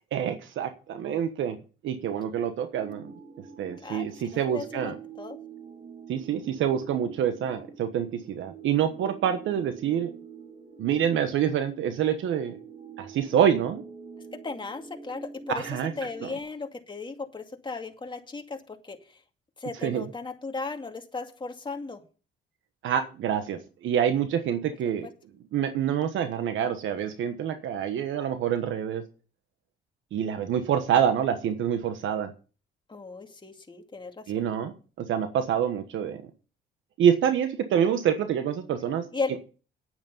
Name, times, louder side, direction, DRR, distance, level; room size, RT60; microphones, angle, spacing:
voice 1, 0.1-1.6 1.8-3.1 3.6-5.0 6.1-10.1 10.8-12.6 13.0-13.8 15.5-15.9 16.2-16.3 19.8-20.0 22.8-25.1 25.5-29.0 30.1-32.3 34.3-36.2 37.0-39.0, right 9 dB, 75° right, 9 dB, 1.2 m, -26 dB
sound 1, 2.7-16.4, right 5 dB, 35° right, 2.8 m, -46 dB
voice 2, 3.8-5.4 14.4-15.7 16.0-19.0 19.6-22.0 25.0-25.1 32.9-34.5 39.1-39.4, left 4 dB, 25° left, 4 dB, 2.3 m, -36 dB
10.5 x 9.1 x 5.4 m, 0.36 s
cardioid pair, 90°, 20 cm